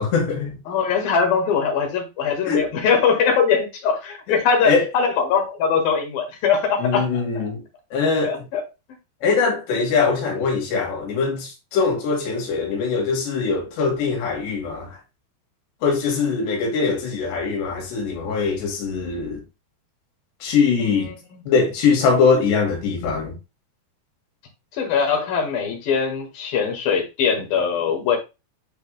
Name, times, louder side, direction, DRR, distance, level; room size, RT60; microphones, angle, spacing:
voice 1, 0.0-0.6 2.5-2.7 4.6-4.9 6.8-7.6 7.9-8.5 9.2-15.0 15.8-19.4 20.4-21.1 21.5-23.3, left 5 dB, 85° left, 4.1 m, -22 dB
voice 2, 0.7-7.1 7.4-7.5 8.2-8.6 21.3-21.4 24.7-28.2, left 6 dB, 65° left, 3.2 m, -21 dB
10.5 x 4.6 x 2.2 m
omnidirectional pair, 4.8 m